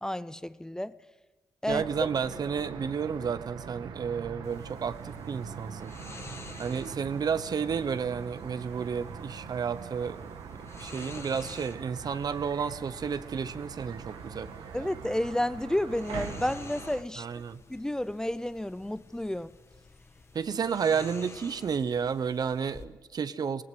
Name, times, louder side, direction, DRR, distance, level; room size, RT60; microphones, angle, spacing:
voice 1, 0.0-0.9 1.6-1.9 14.7-17.3 17.7-19.5, left 1 dB, 10° left, 0.6 m, -31 dB
voice 2, 1.7-5.9 6.6-10.2 10.7-14.5 17.2-17.6 20.3-23.6, right 6 dB, 55° right, 1.0 m, -31 dB
sound 1, 1.7-17.0, right 6 dB, 90° right, 1.4 m, -43 dB
sound 2, 4.4-22.9, left 3 dB, 35° left, 1.5 m, -50 dB
20.5 x 18.5 x 8.0 m
cardioid pair, 85°, 8 cm